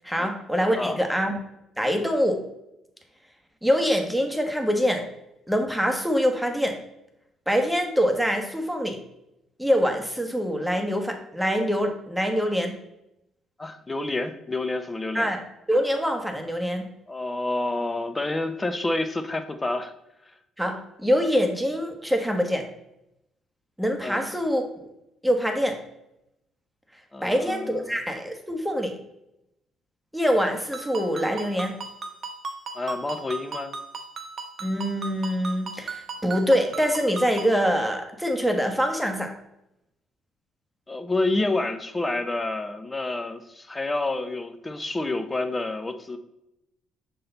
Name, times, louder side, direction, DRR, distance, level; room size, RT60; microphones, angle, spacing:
voice 1, 0.0-1.4 1.8-2.4 3.6-5.0 5.5-6.8 7.5-9.0 9.6-12.7 15.1-15.4 15.7-16.9 20.6-22.7 23.8-24.6 25.2-25.8 27.2-28.9 30.1-31.8 34.6-39.3, equal, ahead, 3 dB, 1.1 m, -24 dB
voice 2, 13.6-15.3 17.1-19.9 24.0-24.3 27.1-28.0 32.7-33.7 40.9-46.2, left 2 dB, 20° left, 8 dB, 0.8 m, -29 dB
Ringtone, 30.7-37.6, right 4 dB, 50° right, 0.9 m, -37 dB
6.6 x 3.8 x 3.9 m, 0.85 s
supercardioid pair, 65°, 0 cm